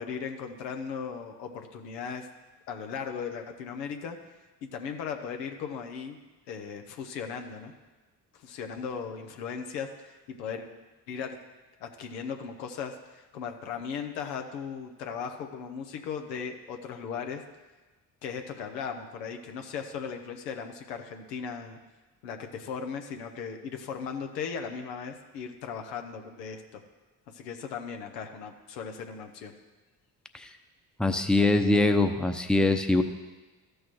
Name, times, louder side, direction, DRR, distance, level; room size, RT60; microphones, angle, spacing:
voice 1, 0.0-2.3 2.7-4.2 4.6-6.2 6.5-7.7 8.3-10.7 11.1-11.4 11.8-17.4 18.2-21.8 22.2-26.8 27.3-29.5, left 6 dB, 90° left, 5 dB, 0.8 m, -37 dB
voice 2, 31.0-33.0, left 2 dB, ahead, 7 dB, 0.7 m, -23 dB
14.0 x 6.4 x 3.1 m, 1.2 s
hypercardioid pair, 45°, 48 cm